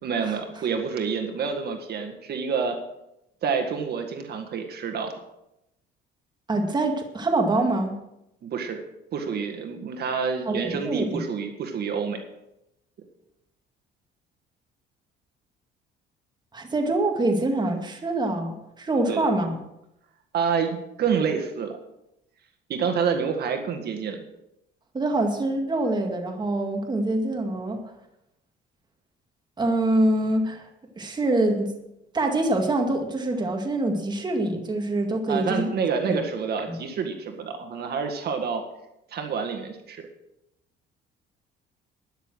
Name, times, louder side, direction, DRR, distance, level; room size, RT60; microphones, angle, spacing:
voice 1, 0.0-2.8 3.4-5.1 8.4-8.8 9.1-12.2 19.1-19.3 20.3-21.7 22.7-24.2 35.3-38.6 39.1-40.0, right 6 dB, 55° right, 5 dB, 1.8 m, -28 dB
voice 2, 6.5-7.9 10.5-11.2 16.5-19.5 24.9-27.8 29.6-30.7 31.0-31.7 32.1-35.7 36.1-36.2 36.7-36.8, right 2 dB, 20° right, 2 dB, 2.2 m, -25 dB
12.5 x 10.0 x 6.3 m, 0.87 s
cardioid pair, 125°, 20 cm